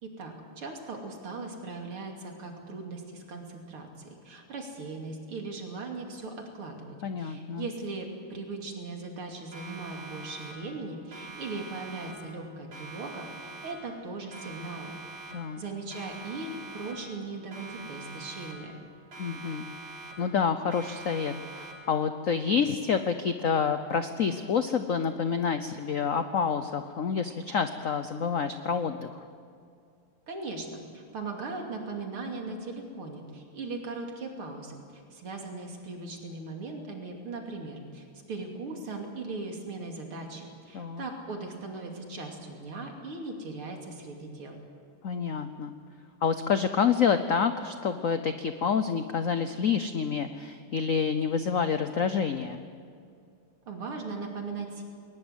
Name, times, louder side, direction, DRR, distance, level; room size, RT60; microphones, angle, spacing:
voice 1, 0.0-15.0 15.3-18.8 30.3-44.6 53.7-54.8, right 3 dB, 75° right, 2 dB, 3.5 m, -39 dB
voice 2, 7.0-7.7 15.3-15.6 19.2-19.6 20.2-29.2 40.7-41.0 45.0-45.7 46.2-52.6, left 6 dB, 70° left, 9 dB, 0.7 m, -28 dB
Siren, 9.5-10.8 11.1-12.4 12.7-14.0 14.3-15.6 15.9-17.2 17.5-18.8 19.1-20.4 20.7-22.0, right 3 dB, 60° right, 4.6 m, -44 dB
20.5 x 19.5 x 8.1 m, 2.4 s
omnidirectional pair, 2.4 m